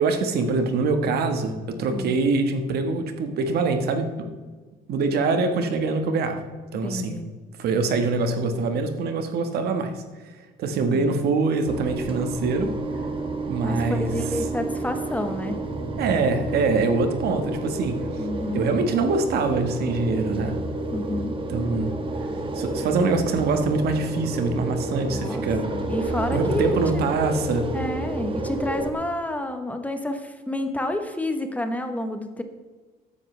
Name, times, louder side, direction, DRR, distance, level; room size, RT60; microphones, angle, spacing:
voice 1, 0.0-4.1 4.9-6.4 6.7-7.1 7.6-10.0 10.6-12.7 13.5-14.1 16.0-18.0 18.5-20.5 21.5-21.9 22.5-25.7 26.3-27.7, right 3 dB, 70° right, 6 dB, 1.5 m, -24 dB
voice 2, 6.8-7.3 10.8-11.2 13.6-15.6 18.2-18.7 20.9-21.3 24.9-25.4 25.7-27.0 27.7-32.4, left 1 dB, 10° left, 7 dB, 1.1 m, -29 dB
sound 1, 11.7-28.9, right 2 dB, 30° right, 1.4 m, -30 dB
13.5 x 10.0 x 3.3 m, 1.4 s
cardioid pair, 110°, 17 cm